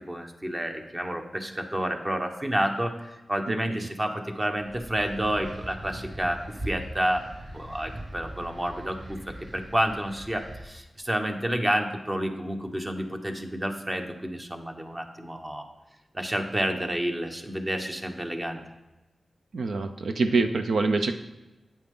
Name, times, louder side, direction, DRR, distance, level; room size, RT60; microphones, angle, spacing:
voice 1, 0.0-2.9 3.3-7.2 7.5-15.7 16.1-18.6, right 1 dB, 25° right, 4 dB, 1.3 m, -30 dB
sound 1, 4.5-10.6, right 1 dB, 55° right, 1.6 m, -41 dB
voice 2, 19.5-21.1, right 3 dB, 85° right, 7 dB, 0.5 m, -25 dB
8.7 x 8.6 x 3.8 m, 1.1 s
cardioid pair, 45°, 0 cm